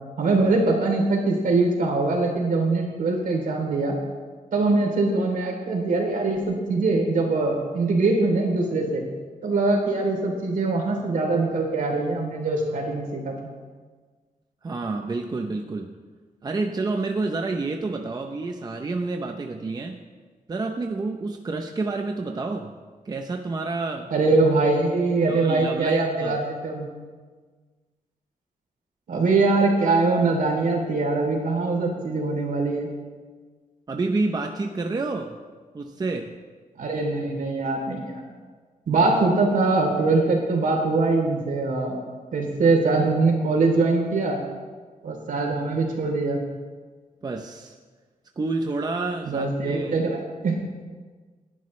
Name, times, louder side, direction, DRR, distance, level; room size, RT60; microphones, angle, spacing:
voice 1, 0.2-3.9 4.5-9.0 9.4-13.3 24.1-26.9 29.1-32.9 36.8-38.2 38.9-42.0 42.3-44.4 45.0-46.4 49.3-50.6, right 3 dB, 70° right, 1 dB, 3.2 m, -22 dB
voice 2, 14.6-16.0 16.4-20.0 20.5-22.7 23.0-24.1 25.3-26.4 33.9-35.4 35.7-36.3 47.2-47.7 48.4-50.1, right 3 dB, 30° right, 4 dB, 0.7 m, -29 dB
28.5 x 11.0 x 3.2 m, 1.5 s
wide cardioid pair, 170°, 14 cm